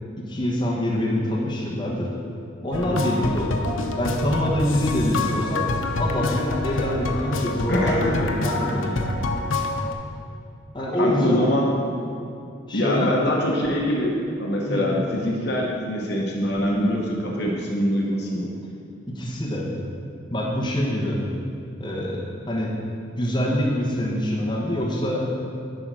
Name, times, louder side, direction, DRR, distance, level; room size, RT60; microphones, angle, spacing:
voice 1, 0.2-2.1 2.6-3.5 4.0-5.6 6.0-9.2 10.7-11.4 12.7-13.2 14.7-14.8 19.1-19.7 20.3-21.2 21.8-22.7 23.2-25.3, left 1 dB, 25° left, -5 dB, 1.2 m, -25 dB
sound 1, 2.7-9.9, left 2 dB, 90° left, 0.7 m, -27 dB
voice 2, 7.7-8.0 10.9-11.7 12.7-14.1 14.4-18.5, equal, 55° left, -2 dB, 1.0 m, -24 dB
10.5 x 4.0 x 6.1 m, 2.5 s
head